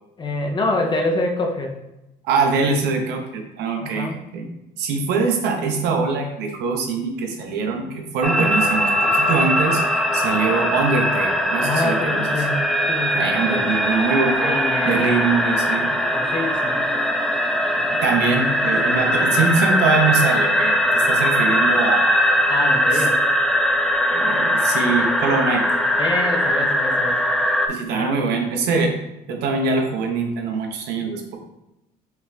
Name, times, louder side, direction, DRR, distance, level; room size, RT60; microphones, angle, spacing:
voice 1, 0.2-1.8 3.8-4.2 7.8-7.9 11.6-12.6 12.9-13.7 14.4-15.4 16.1-16.8 18.7-19.5 22.5-23.2 26.0-27.3 27.9-28.5, left 2 dB, 25° left, 1 dB, 0.8 m, -26 dB
voice 2, 2.2-4.5 4.8-12.3 13.1-14.6 14.8-15.9 18.0-22.4 22.9-23.0 24.1-25.7 27.7-28.9 29.3-31.4, right 4 dB, 85° right, 3 dB, 0.8 m, -23 dB
sound 1, 8.2-27.7, equal, ahead, 0.4 m, -20 dB
5.6 x 2.4 x 3.3 m, 0.91 s
cardioid pair, 110°, 17 cm